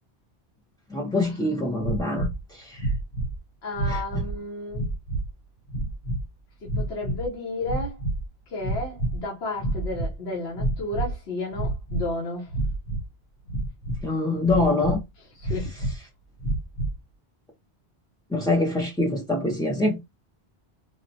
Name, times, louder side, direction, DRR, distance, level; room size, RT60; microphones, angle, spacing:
voice 1, 0.9-2.9 3.9-4.0 14.0-15.0 18.3-20.0, left 2 dB, 5° left, 0.4 m, -25 dB
sound 1, 1.8-2.4 2.8-3.4 3.7-4.4 4.7-5.3 5.7-6.2 6.7-7.3 7.6-8.3 8.6-9.2 9.6-10.1 10.5-11.2 11.5-12.1 12.5-13.1 13.5-14.1 14.4-15.0 15.4-16.0 16.4-17.0, right 2 dB, 60° left, 1.0 m, -28 dB
voice 2, 3.6-4.9 6.6-8.0 8.5-12.5 15.3-15.9, left 2 dB, 85° left, 1.2 m, -32 dB
4.0 x 2.1 x 2.7 m
omnidirectional pair, 1.1 m